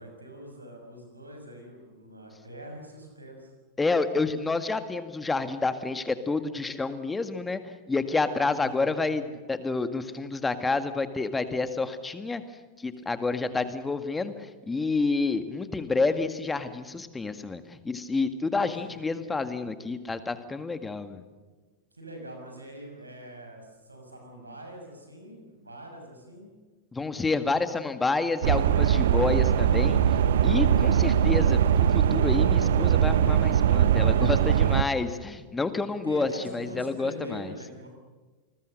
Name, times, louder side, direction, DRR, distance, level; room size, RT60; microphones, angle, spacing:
voice 1, 0.0-3.5 8.5-9.0 18.5-18.9 21.9-26.5 36.0-37.9, equal, 80° right, 3 dB, 6.6 m, -43 dB
voice 2, 3.8-7.6 7.9-9.2 9.5-12.4 12.8-21.2 26.9-30.0 30.4-37.5, left 3 dB, 10° left, 10 dB, 1.9 m, -29 dB
sound 1, 28.4-34.8, right 9 dB, 60° right, 0.9 m, -21 dB
28.5 x 21.0 x 6.7 m, 1.3 s
figure-of-eight pair, 90°, 0 cm